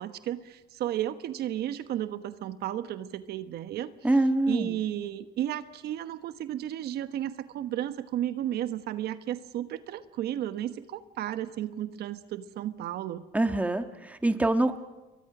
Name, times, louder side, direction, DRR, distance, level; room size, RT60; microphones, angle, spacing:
voice 1, 0.0-3.9 4.5-13.2, right 12 dB, 70° right, 11 dB, 1.1 m, -33 dB
voice 2, 4.0-4.8 13.3-14.8, right 2 dB, 10° right, 7 dB, 1.5 m, -25 dB
29.0 x 23.0 x 6.1 m, 1.1 s
cardioid pair, 110°, 17 cm